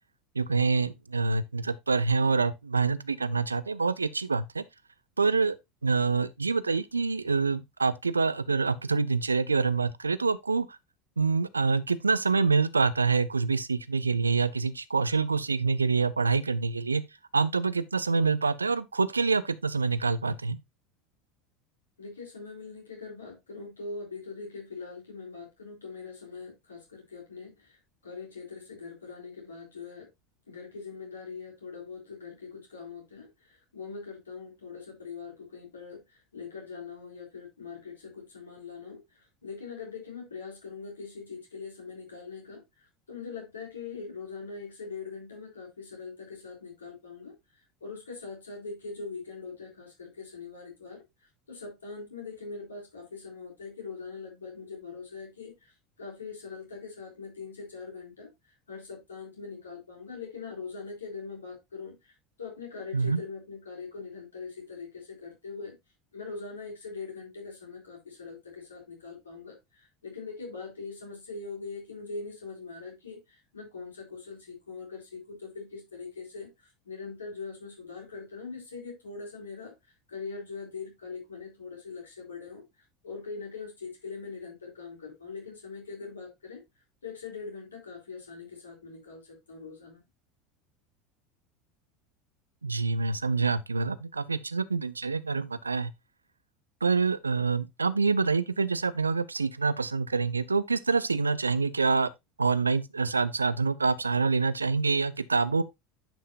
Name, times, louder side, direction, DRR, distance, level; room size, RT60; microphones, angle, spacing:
voice 1, 0.4-4.6 5.2-5.6 5.8-10.7 11.2-17.0 17.3-20.6 62.9-63.2 92.6-95.9 96.8-102.1 102.4-105.6, right 4 dB, 85° right, 0.4 m, -26 dB
voice 2, 22.0-30.1 30.5-65.7 66.1-76.5 76.8-79.7 80.1-82.6 83.0-86.6 87.0-90.0, left 4 dB, 80° left, 3.4 m, -42 dB
10.0 x 5.5 x 2.5 m
figure-of-eight pair, 75°, 0 cm